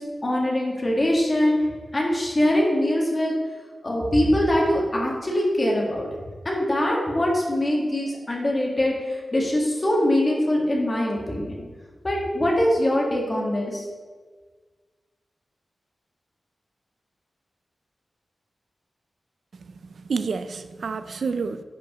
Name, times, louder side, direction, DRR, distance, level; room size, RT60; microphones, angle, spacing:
voice 1, 0.0-3.3 3.8-6.1 6.4-11.5 12.0-13.8, left 1 dB, 30° left, -2 dB, 1.5 m, -23 dB
voice 2, 19.5-21.6, right 5 dB, 70° right, 11 dB, 0.3 m, -29 dB
10.0 x 5.0 x 3.0 m, 1.5 s
wide cardioid pair, 145°, 0 cm